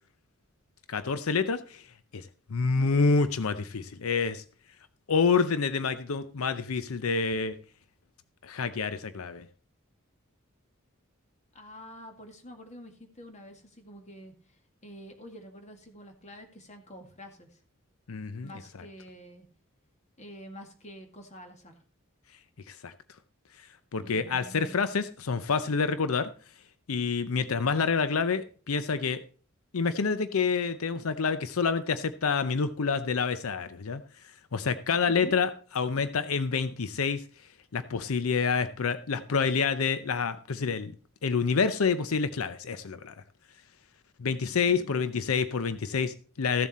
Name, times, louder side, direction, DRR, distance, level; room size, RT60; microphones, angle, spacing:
voice 1, 0.9-4.4 5.1-7.6 8.4-9.5 18.1-18.5 22.7-22.9 23.6-26.3 26.9-29.2 29.7-37.2 37.7-40.9 41.2-43.1 44.2-46.7, left 5 dB, 90° left, 13 dB, 0.6 m, -28 dB
voice 2, 11.5-17.6 18.4-19.5 20.2-21.8 24.0-24.9 27.2-27.6 35.1-35.4 44.3-45.0, equal, 35° left, 4 dB, 2.0 m, -47 dB
14.5 x 7.3 x 4.2 m, 0.41 s
head